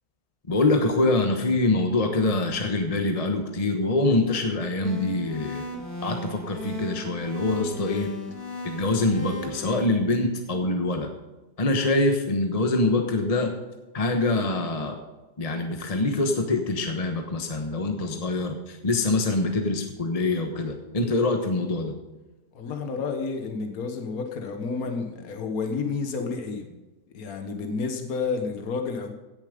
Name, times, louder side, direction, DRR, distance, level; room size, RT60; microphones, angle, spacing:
voice 1, 0.5-5.6 6.0-8.1 8.6-11.1 11.6-13.5 13.9-15.0 15.4-21.9, left 2 dB, 25° left, 4 dB, 1.1 m, -24 dB
sound 1, 4.8-9.8, left 1 dB, 80° left, 3.5 m, -36 dB
voice 2, 22.5-26.7 27.1-29.1, left 4 dB, 60° left, 5 dB, 1.7 m, -30 dB
16.5 x 7.2 x 5.1 m, 1.1 s
omnidirectional pair, 1.8 m